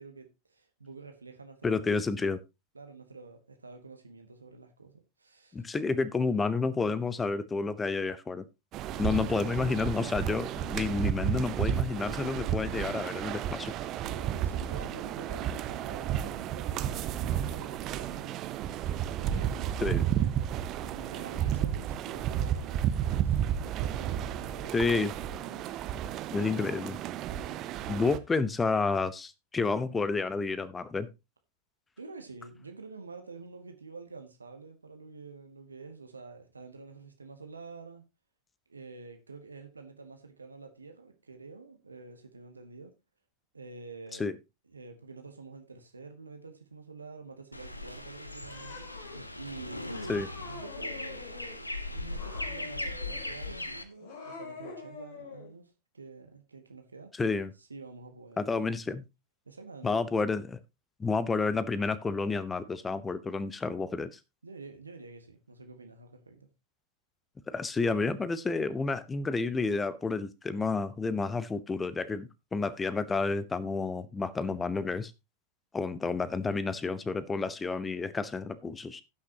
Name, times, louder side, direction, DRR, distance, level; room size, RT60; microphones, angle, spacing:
voice 1, 0.0-1.9 2.7-5.7 9.0-9.3 13.9-18.4 19.2-25.9 32.0-38.0 38.7-43.0 43.5-44.3 44.7-49.9 50.5-51.2 51.8-57.1 57.6-58.6 59.5-60.3 64.4-66.5, right 3 dB, 80° right, 1.3 m, -48 dB
voice 2, 1.6-2.4 5.5-8.4 9.0-13.7 19.8-20.0 24.7-25.1 26.3-27.0 27.9-31.1 44.2-44.3 50.1-50.3 57.2-57.5 58.4-59.0 59.8-60.6 61.0-64.2 67.5-75.1 75.7-79.0, left 4 dB, 15° left, 0.8 m, -30 dB
sound 1, 8.7-28.2, right 10 dB, 35° right, 0.7 m, -32 dB
sound 2, 47.5-53.8, left 2 dB, 85° left, 0.9 m, -39 dB
Cat, 48.5-49.2 49.9-51.6 52.1-53.4 53.9-55.5, left 4 dB, 50° left, 3.3 m, -45 dB
17.5 x 6.1 x 2.8 m
figure-of-eight pair, 90°, 0 cm